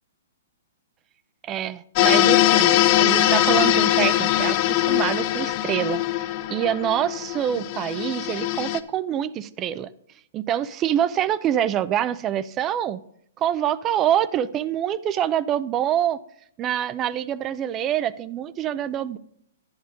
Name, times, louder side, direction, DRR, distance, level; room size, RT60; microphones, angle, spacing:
voice 1, 1.4-9.9 10.3-13.0 13.4-16.2 16.6-19.2, right 10 dB, 25° right, 16 dB, 0.6 m, -25 dB
sound 1, 2.0-8.8, left 14 dB, 40° left, 0.8 m, -21 dB
11.0 x 10.5 x 3.9 m, 0.69 s
hypercardioid pair, 140°, 0 cm